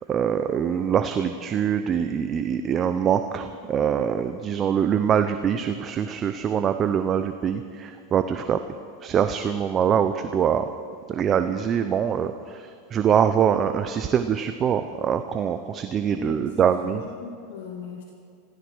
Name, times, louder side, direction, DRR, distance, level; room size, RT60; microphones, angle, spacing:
voice 1, 0.1-8.6 9.0-10.7 11.1-17.0, right 8 dB, 30° right, 8 dB, 0.7 m, -24 dB
voice 2, 16.1-18.0, left 6 dB, 75° left, -1 dB, 2.5 m, -39 dB
15.0 x 15.0 x 6.3 m, 2.2 s
supercardioid pair, 130°, 0 cm